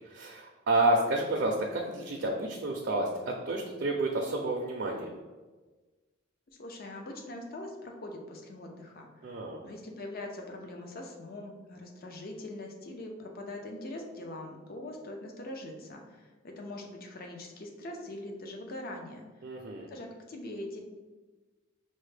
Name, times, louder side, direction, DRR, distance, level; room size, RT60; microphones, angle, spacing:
voice 1, 0.0-5.1 9.2-9.6 19.4-19.9, right 2 dB, 55° right, 0 dB, 0.4 m, -30 dB
voice 2, 6.6-19.2 19.9-20.8, left 1 dB, 50° left, 2 dB, 0.5 m, -42 dB
5.4 x 2.1 x 3.2 m, 1.3 s
head